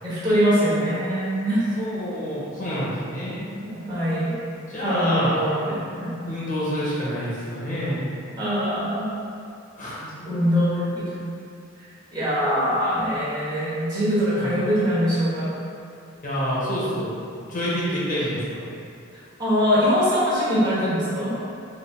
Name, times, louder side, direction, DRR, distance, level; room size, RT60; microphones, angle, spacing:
voice 1, 0.0-1.6 3.6-4.4 4.7-6.2 8.4-9.1 10.2-11.2 12.1-15.5 19.4-21.3, equal, 20° right, -11 dB, 1.2 m, -23 dB
voice 2, 1.8-3.5 4.6-5.5 6.3-8.0 9.8-10.1 14.4-14.5 16.2-18.6, equal, 40° left, -8 dB, 0.8 m, -27 dB
4.1 x 2.4 x 3.5 m, 2.6 s
head